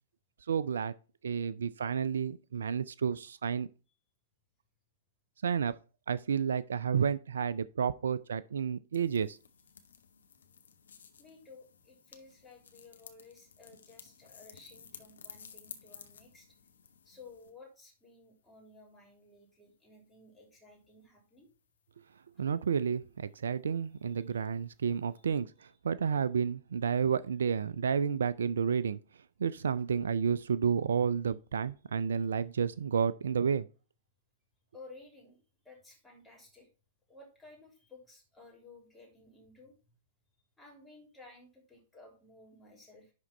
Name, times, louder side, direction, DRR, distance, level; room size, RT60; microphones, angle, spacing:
voice 1, 0.5-0.9 1.2-3.7 5.4-5.7 6.1-9.4 22.4-25.5 25.8-29.0 29.4-33.6, right 7 dB, 70° right, 0.3 m, -31 dB
sound 1, 8.9-17.5, left 6 dB, 70° left, 1.1 m, -54 dB
voice 2, 11.2-16.5 17.0-21.5 24.1-24.3 34.7-35.4 35.6-36.7 37.1-39.8 40.6-43.1, left 3 dB, 5° left, 3.0 m, -55 dB
10.5 x 3.7 x 4.3 m
figure-of-eight pair, 105°, 0 cm